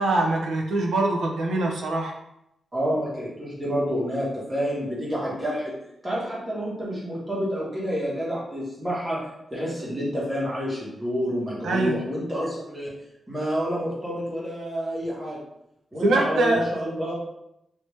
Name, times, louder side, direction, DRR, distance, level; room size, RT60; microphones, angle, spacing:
voice 1, 0.0-2.1 11.6-11.9 16.0-16.6, right 2 dB, 85° right, 1 dB, 0.6 m, -23 dB
voice 2, 2.7-5.7 6.0-9.2 9.5-12.9 13.3-15.4 15.9-17.1, equal, 15° right, -7 dB, 1.4 m, -28 dB
3.3 x 2.8 x 3.2 m, 0.82 s
wide cardioid pair, 130°, 0 cm